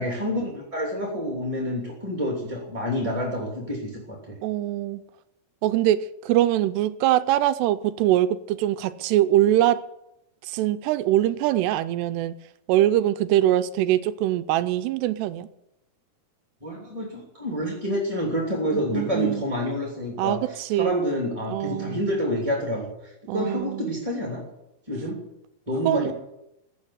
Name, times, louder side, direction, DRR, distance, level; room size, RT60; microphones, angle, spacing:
voice 1, 0.0-4.4 16.6-20.4 20.7-24.4 24.9-25.2 25.7-26.1, equal, 10° right, 0 dB, 2.1 m, -28 dB
voice 2, 4.4-5.0 5.6-9.8 10.4-12.4 12.7-15.5 18.7-19.4 20.2-21.0 21.5-22.0 23.3-23.9 25.9-26.1, right 13 dB, 80° right, 13 dB, 2.7 m, -23 dB
15.0 x 9.2 x 9.7 m, 0.85 s
omnidirectional pair, 4.9 m